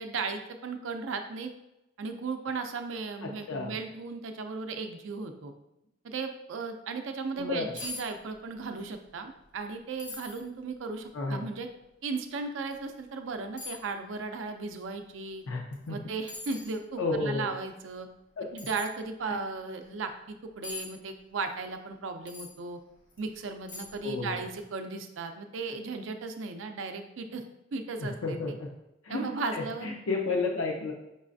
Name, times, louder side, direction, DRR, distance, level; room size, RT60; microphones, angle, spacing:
voice 1, 0.0-1.5 2.0-5.5 6.0-11.7 12.0-15.4 15.9-18.1 18.5-22.8 23.2-27.4 27.7-28.4 29.1-29.9, right 4 dB, 70° right, 6 dB, 0.5 m, -36 dB
voice 2, 3.2-3.8 7.4-7.8 11.1-11.5 15.5-16.0 17.0-17.5 18.4-18.5 19.3-19.4 24.0-24.4 28.0-28.7 29.0-30.9, left 3 dB, 85° left, 0 dB, 0.5 m, -32 dB
sound 1, 7.8-8.1 8.3-8.9 9.3-9.4 10.0-10.4 11.1-11.2 12.7-12.8 13.6-13.9 15.7-15.9 16.3-16.8 18.6-18.9 20.6-20.9 22.3-22.5 23.1-23.2 23.7-24.1 24.4-24.5, left 3 dB, 40° left, 0.9 m, -41 dB
5.3 x 3.2 x 2.6 m, 0.91 s
head